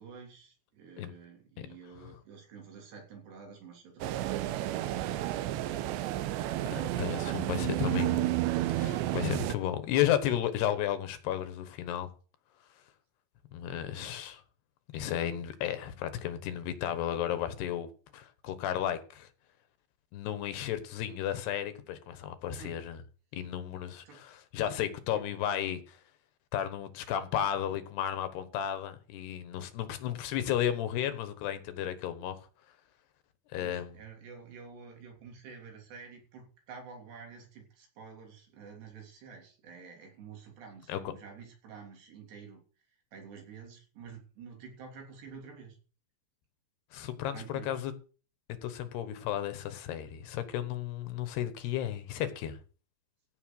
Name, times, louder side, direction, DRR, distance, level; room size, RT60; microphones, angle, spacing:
voice 1, 0.0-5.2 13.9-14.2 22.6-22.8 24.1-24.3 25.1-25.4 33.5-42.6 43.1-45.8 47.3-47.9, right 6 dB, 70° right, 5.5 m, -49 dB
sound 1, 4.0-9.6, right 15 dB, 90° right, 3.0 m, -31 dB
voice 2, 6.7-8.3 8.7-12.1 13.5-14.4 14.9-19.3 20.1-23.0 23.3-26.0 26.5-32.4 33.5-33.9 40.9-41.0 46.9-47.9 48.6-52.6, left 11 dB, 75° left, 3.2 m, -33 dB
15.5 x 7.0 x 6.4 m
omnidirectional pair, 5.0 m